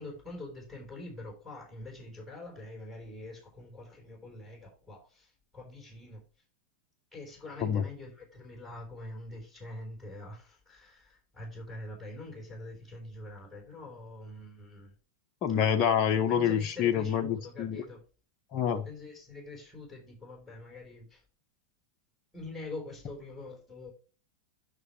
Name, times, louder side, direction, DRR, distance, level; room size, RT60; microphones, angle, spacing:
voice 1, 0.0-6.2 7.1-14.9 16.3-18.0 18.8-21.2 22.3-23.9, left 2 dB, ahead, 3.8 m, -45 dB
voice 2, 15.4-17.8 18.5-18.8, left 8 dB, 35° left, 0.8 m, -27 dB
9.6 x 6.1 x 3.1 m
figure-of-eight pair, 90°, 0 cm